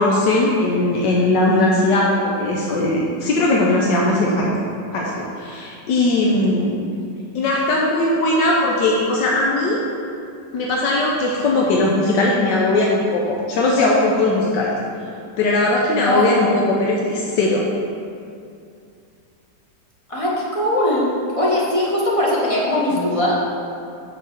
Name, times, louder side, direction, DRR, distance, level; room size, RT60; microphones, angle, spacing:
voice 1, 0.0-4.5 4.9-6.8 7.3-9.8 10.5-14.7 15.4-17.6, left 2 dB, 80° left, -3 dB, 1.4 m, -19 dB
voice 2, 16.1-16.6 20.1-21.1 21.4-23.4, left 1 dB, 20° left, -5 dB, 1.2 m, -20 dB
5.9 x 4.7 x 6.5 m, 2.4 s
omnidirectional pair, 1.9 m